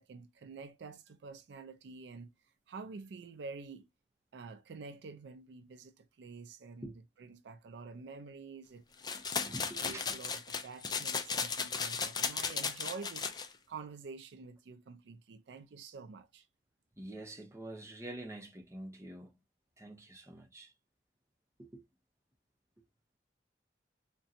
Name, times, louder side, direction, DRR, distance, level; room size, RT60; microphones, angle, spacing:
voice 1, 0.0-3.9 4.3-16.5, right 4 dB, 70° right, 0.4 m, -48 dB
sound 1, 9.0-13.5, left 5 dB, 25° left, 0.4 m, -35 dB
voice 2, 9.4-10.1 17.0-19.3 19.8-20.7 21.6-21.8, right 1 dB, 15° right, 0.7 m, -46 dB
3.7 x 2.2 x 2.7 m
head